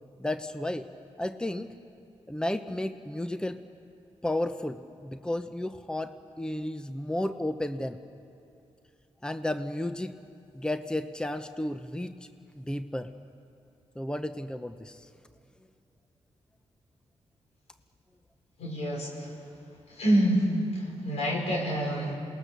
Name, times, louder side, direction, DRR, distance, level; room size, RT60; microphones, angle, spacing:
voice 1, 0.2-0.9 1.2-1.7 2.3-3.6 4.2-8.0 9.2-10.1 10.5-12.1 12.6-13.1 14.0-15.1, left 1 dB, 5° left, 9 dB, 0.9 m, -32 dB
voice 2, 18.6-19.4 19.9-22.1, right 1 dB, 80° left, -1 dB, 5.2 m, -27 dB
27.5 x 19.5 x 6.8 m, 2.6 s
cardioid pair, 60°, 11 cm